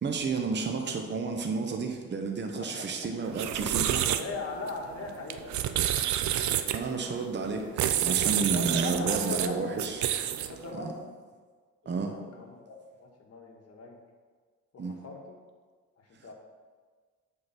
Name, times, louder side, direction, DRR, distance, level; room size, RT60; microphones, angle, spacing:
voice 1, 0.0-4.0 6.7-10.0 10.7-10.9 11.9-12.1 14.8-15.0, right 4 dB, 35° right, 3 dB, 0.9 m, -31 dB
voice 2, 2.6-3.1 3.9-6.9 8.5-9.8 10.5-11.1 11.8-13.9 14.7-15.4 16.0-16.3, left 3 dB, 50° left, 0 dB, 1.6 m, -40 dB
sound 1, 3.2-10.7, right 11 dB, 70° right, 0.5 m, -29 dB
7.9 x 3.9 x 5.8 m, 1.5 s
cardioid pair, 90°, 30 cm